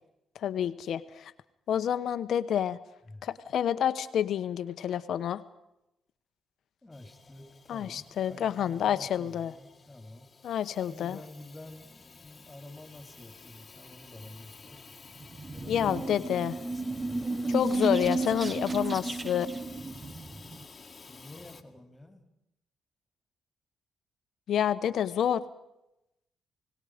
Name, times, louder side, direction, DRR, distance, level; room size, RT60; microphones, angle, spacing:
voice 1, 0.3-1.3 1.7-2.8 3.2-5.4 7.7-9.5 10.4-11.2 15.7-16.5 17.5-19.5 24.5-25.4, left 9 dB, 65° left, 13 dB, 0.9 m, -28 dB
voice 2, 6.8-10.3 10.8-14.8 15.5-17.3 21.1-22.2, left 1 dB, 15° left, 6 dB, 3.9 m, -49 dB
Hiss / Toilet flush / Trickle dribble, 6.9-21.6, left 4 dB, 30° left, 1.9 m, -52 dB
sound 1, 15.2-20.6, right 2 dB, 25° right, 0.9 m, -33 dB
29.0 x 18.5 x 5.1 m, 0.86 s
cardioid pair, 90°, 0 cm